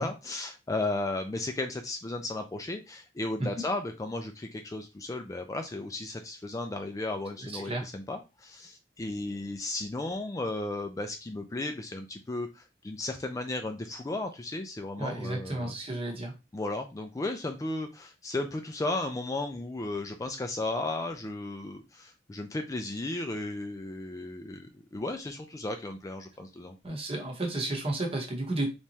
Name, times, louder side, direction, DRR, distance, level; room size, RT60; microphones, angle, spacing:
voice 1, 0.0-15.8 16.5-26.8, left 2 dB, 20° left, 5 dB, 0.3 m, -35 dB
voice 2, 7.4-7.8 15.0-16.3 26.8-28.7, right 2 dB, 35° right, 2 dB, 1.0 m, -32 dB
3.4 x 3.0 x 2.7 m, 0.26 s
head